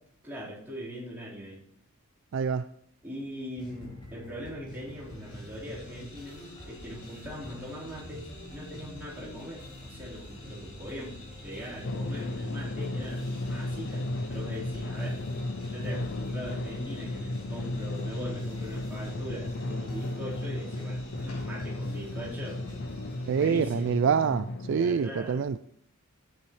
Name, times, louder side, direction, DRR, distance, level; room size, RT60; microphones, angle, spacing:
voice 1, 0.2-1.6 3.0-15.2 15.7-22.6 23.3-23.9 24.7-25.4, equal, 10° right, -9 dB, 4.1 m, -41 dB
voice 2, 2.3-2.7 23.3-25.6, right 6 dB, 55° right, 12 dB, 0.3 m, -26 dB
sound 1, 3.6-23.3, equal, 20° left, 3.3 m, -46 dB
sound 2, 4.7-24.4, left 1 dB, 90° left, 4.5 m, -52 dB
Drum, 11.8-24.8, left 2 dB, 50° left, 0.5 m, -34 dB
12.0 x 9.8 x 3.2 m, 0.65 s
head